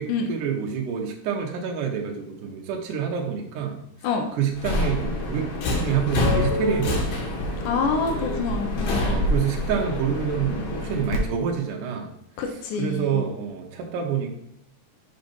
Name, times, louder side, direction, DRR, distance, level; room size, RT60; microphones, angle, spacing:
voice 1, 0.0-3.8 4.4-7.5 9.0-12.1 12.8-14.4, right 7 dB, 80° right, 1 dB, 2.4 m, -27 dB
Subway metro underground, 4.5-11.2, left 1 dB, 65° left, 2.2 m, -26 dB
voice 2, 7.6-9.0 12.4-13.2, left 4 dB, 85° left, 2 dB, 2.3 m, -26 dB
7.1 x 4.0 x 5.2 m, 0.75 s
omnidirectional pair, 3.6 m